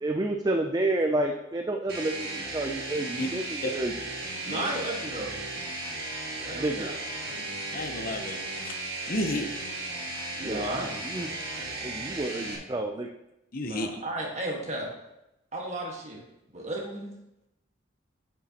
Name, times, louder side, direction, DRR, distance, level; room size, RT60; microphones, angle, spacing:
voice 1, 0.0-3.9 6.5-6.9 10.4-11.3 11.8-13.1, right 2 dB, 20° right, 3 dB, 0.4 m, -30 dB
sound 1, 1.9-12.6, right 2 dB, 55° right, 1.9 m, -36 dB
voice 2, 4.4-5.4 6.4-6.9 7.3-7.5 10.4-11.3 13.6-14.9 15.5-16.2 16.5-17.1, right 1 dB, 35° right, -1 dB, 1.5 m, -34 dB
voice 3, 7.7-8.4 9.1-9.5 13.5-14.0, left 1 dB, 45° left, 6 dB, 0.7 m, -31 dB
8.6 x 7.2 x 2.9 m, 0.89 s
head